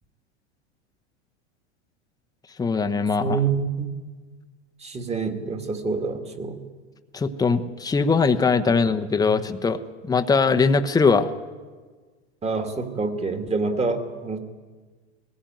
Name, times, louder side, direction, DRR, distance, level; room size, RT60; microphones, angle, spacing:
voice 1, 2.6-3.4 7.1-9.8 10.1-11.3, left 4 dB, 10° left, 7 dB, 1.0 m, -21 dB
voice 2, 3.2-3.9 4.8-6.6 12.4-14.4, right 4 dB, 20° right, 5 dB, 2.2 m, -26 dB
19.5 x 15.0 x 9.2 m, 1.4 s
supercardioid pair, 120°, 34 cm